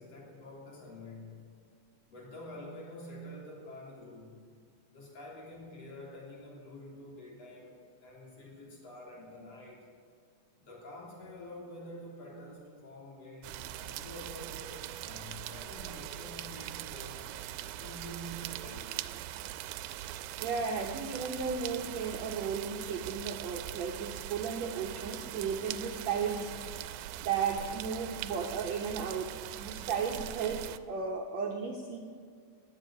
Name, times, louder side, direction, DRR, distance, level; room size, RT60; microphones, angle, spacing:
voice 1, 0.0-1.4 2.1-4.4 4.9-9.9 10.6-19.0, equal, 45° left, -3 dB, 4.2 m, -47 dB
sound 1, 13.4-30.8, right 13 dB, 85° right, 2.3 m, -41 dB
voice 2, 20.4-26.5 27.2-29.3 29.6-30.6 30.9-32.0, right 6 dB, 65° right, 1 dB, 1.8 m, -34 dB
18.5 x 7.7 x 8.9 m, 2.1 s
omnidirectional pair, 4.2 m